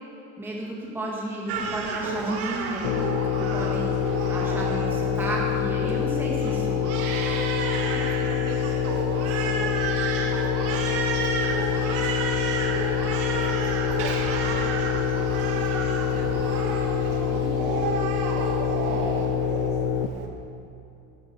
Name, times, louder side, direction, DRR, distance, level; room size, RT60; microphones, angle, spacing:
voice 1, 0.4-6.8, right 1 dB, 5° right, -4 dB, 1.9 m, -32 dB
Crying sobbing, 1.5-20.3, right 5 dB, 35° right, 1.7 m, -31 dB
sound 1, 2.8-20.1, left 8 dB, 30° left, 0.4 m, -26 dB
voice 2, 6.0-7.4 7.9-9.8 10.1-12.1 12.4-12.7 13.3-15.0 15.5-16.7 17.0-18.1, right 3 dB, 65° right, -1 dB, 3.6 m, -42 dB
sound 2, 8.5-19.3, equal, 10° left, 3.4 m, -45 dB
13.5 x 12.5 x 7.9 m, 2.8 s
supercardioid pair, 170°, 40 cm